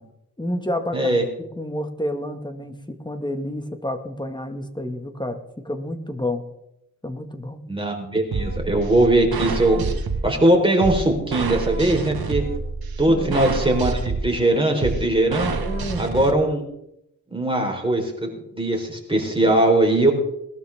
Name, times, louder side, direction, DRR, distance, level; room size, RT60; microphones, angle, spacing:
voice 1, 0.4-1.1 1.6-6.4 7.0-7.6 13.1-13.4 15.6-16.1 19.4-19.6, left 1 dB, 10° left, 6 dB, 1.9 m, -29 dB
voice 2, 0.9-1.2 7.7-9.9 10.2-12.4 13.0-15.5 16.0-16.6 17.3-20.1, right 1 dB, 15° right, 1 dB, 4.2 m, -20 dB
sound 1, 8.3-16.3, right 4 dB, 70° right, 1.6 m, -28 dB
20.0 x 12.5 x 3.6 m, 0.80 s
cardioid pair, 65°, 38 cm